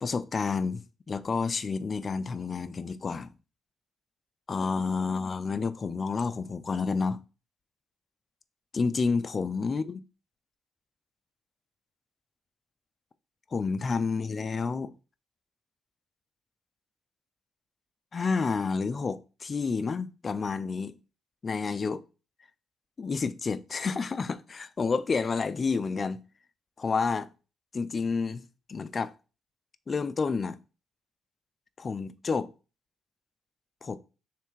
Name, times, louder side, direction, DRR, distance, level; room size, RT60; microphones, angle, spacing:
voice 1, 0.0-3.3 4.5-7.2 8.7-10.0 13.5-14.9 18.1-20.9 21.4-22.0 23.0-26.2 26.8-27.3 27.7-28.4 28.7-29.1 29.9-30.6 31.8-32.5 33.8-34.0, left 4 dB, 35° left, 0.4 m, -29 dB
3.4 x 3.2 x 4.6 m
cardioid pair, 90°, 0 cm